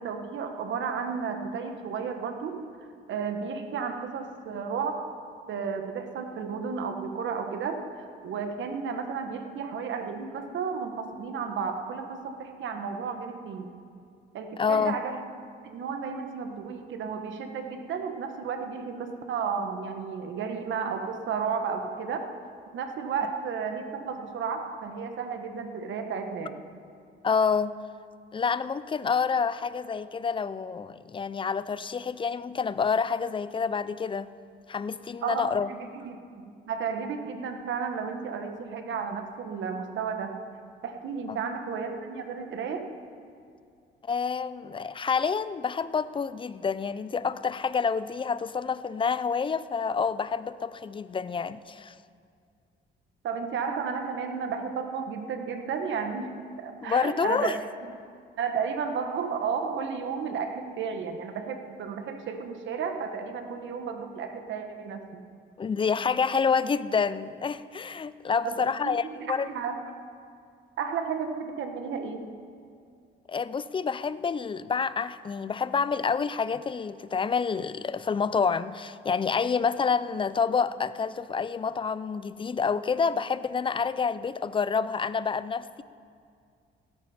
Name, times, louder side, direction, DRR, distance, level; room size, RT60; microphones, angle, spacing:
voice 1, 0.0-2.7 3.1-5.1 5.5-13.7 14.3-15.2 15.6-22.3 22.7-26.6 35.2-40.4 40.8-42.9 53.2-57.6 58.4-65.2 68.4-69.9 70.8-72.3, right 6 dB, 70° right, 6 dB, 1.3 m, -33 dB
voice 2, 14.6-15.0 27.2-27.7 28.3-34.3 34.7-35.7 41.3-41.4 44.0-51.9 56.8-57.6 65.6-69.5 73.3-85.8, left 5 dB, 25° left, 15 dB, 0.5 m, -28 dB
16.5 x 13.5 x 4.4 m, 2.3 s
cardioid pair, 90°, 20 cm